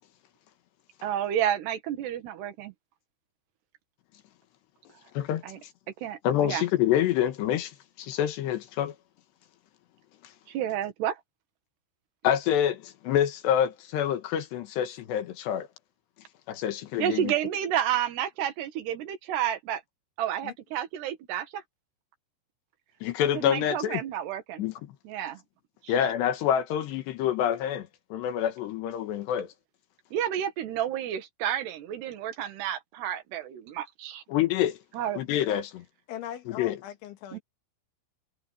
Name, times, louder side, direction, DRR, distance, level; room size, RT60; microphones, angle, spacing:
voice 1, 1.0-2.7 5.4-5.6 6.0-6.6 10.5-11.2 17.0-19.8 20.2-21.6 23.4-24.6 25.1-25.4 25.8-25.9 30.1-34.2 34.9-35.2 37.3-37.4, right 10 dB, 65° right, 3.8 m, -30 dB
voice 2, 6.2-8.9 12.2-15.7 16.5-17.3 23.0-24.0 24.6-24.7 25.9-29.5 34.3-34.8 35.2-35.8 36.5-36.8, left 10 dB, 75° left, 3.4 m, -27 dB
voice 3, 36.1-37.4, left 11 dB, 90° left, 4.1 m, -40 dB
omnidirectional pair, 5.3 m